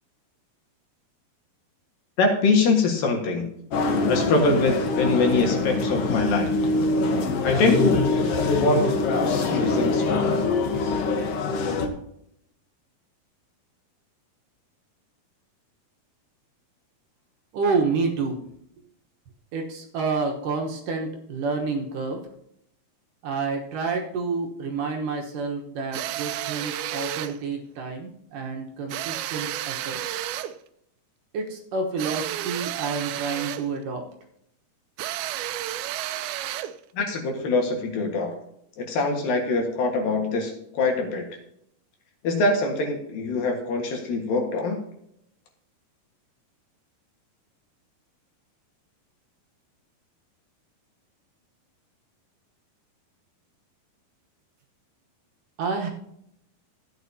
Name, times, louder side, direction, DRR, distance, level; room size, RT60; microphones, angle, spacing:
voice 1, 2.2-3.5 4.1-6.5 7.4-8.1 8.6-10.4 36.9-38.3 38.8-41.3 42.2-44.8, left 3 dB, 65° left, 2 dB, 3.1 m, -24 dB
sound 1, 3.7-11.9, left 3 dB, 90° left, 1.3 m, -24 dB
voice 2, 17.5-18.4 19.5-22.2 23.2-30.0 31.3-34.0 55.6-55.9, right 4 dB, 65° right, 2 dB, 2.5 m, -29 dB
sound 2, 25.9-27.4 28.9-30.6 32.0-33.7 35.0-36.8, right 13 dB, 80° right, 2.4 m, -31 dB
14.5 x 9.3 x 2.8 m, 0.74 s
omnidirectional pair, 4.5 m